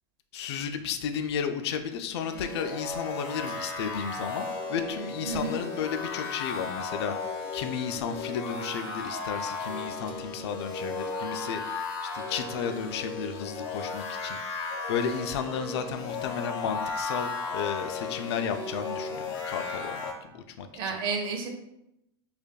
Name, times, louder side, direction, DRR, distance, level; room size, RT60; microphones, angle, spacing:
voice 1, 0.3-7.1 7.5-11.8 12.1-14.4 14.9-21.0, left 7 dB, 80° left, 7 dB, 0.4 m, -33 dB
sound 1, 2.2-20.1, left 4 dB, 60° left, 0.8 m, -35 dB
voice 2, 5.2-5.6 20.7-21.5, right 4 dB, 35° right, 2 dB, 0.7 m, -31 dB
5.0 x 2.5 x 2.2 m, 0.86 s
supercardioid pair, 145°, 14 cm